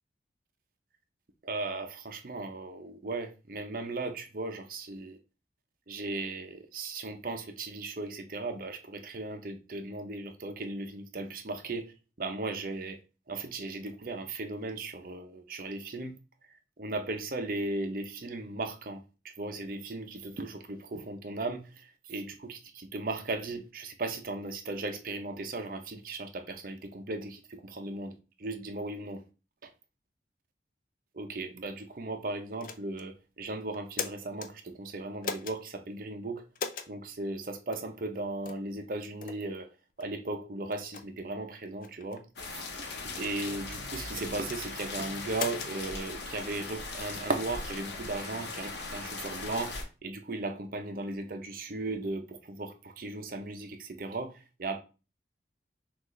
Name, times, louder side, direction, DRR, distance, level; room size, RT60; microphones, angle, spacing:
voice 1, 1.4-5.2 5.9-11.9 12.2-13.0 13.3-16.2 16.8-29.2 31.1-36.4 36.9-39.7 40.0-42.2 43.0-54.3 54.6-54.8, right 2 dB, 50° right, 0.6 m, -37 dB
sound 1, 32.6-33.1 33.7-34.5 35.2-35.6 36.6-36.9 37.7-37.9 38.4-38.7 39.2-39.4 40.0-40.1 40.7-41.0 41.8-42.2 43.0-43.6 44.1-44.6 45.3-45.7, left 6 dB, 45° left, 0.4 m, -38 dB
sound 2, 42.4-49.8, left 3 dB, 70° left, 0.9 m, -39 dB
5.9 x 2.5 x 3.1 m
head